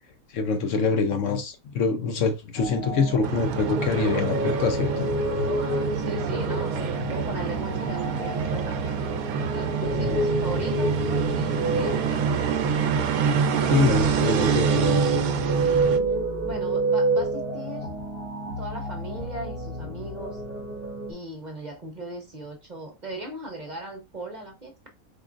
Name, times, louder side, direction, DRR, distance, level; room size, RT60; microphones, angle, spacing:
voice 1, 0.3-5.1 10.0-10.2 13.6-15.2, left 4 dB, 65° left, 0.9 m, -25 dB
sound 1, 2.5-21.1, right 1 dB, 45° left, 1.9 m, -29 dB
sound 2, 3.2-16.0, right 6 dB, 80° right, 1.1 m, -26 dB
voice 2, 5.9-9.0 9.5-11.0 11.4-12.2 15.8-17.9 18.6-20.4 21.1-24.7, right 2 dB, 35° right, 0.9 m, -38 dB
4.9 x 3.7 x 2.5 m
omnidirectional pair, 1.5 m